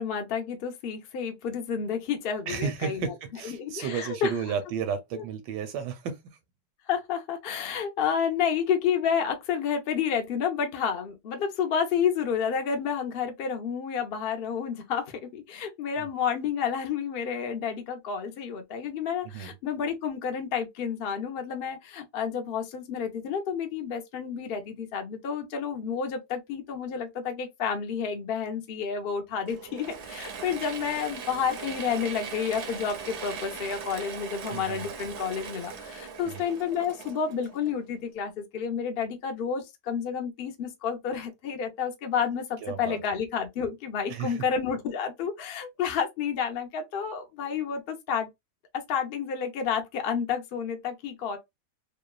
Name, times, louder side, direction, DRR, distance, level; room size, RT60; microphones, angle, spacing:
voice 1, 0.0-3.1 3.4-4.3 5.1-5.2 6.9-48.3 48.7-51.4, left 7 dB, 80° left, 0.5 m, -30 dB
voice 2, 2.5-6.2 19.3-19.5 34.5-34.9 36.3-36.4 42.6-43.0 44.1-44.4, right 7 dB, 80° right, 1.2 m, -33 dB
Mechanisms / Drill, 29.4-38.1, right 6 dB, 65° right, 0.7 m, -40 dB
3.0 x 2.1 x 2.3 m
omnidirectional pair, 1.9 m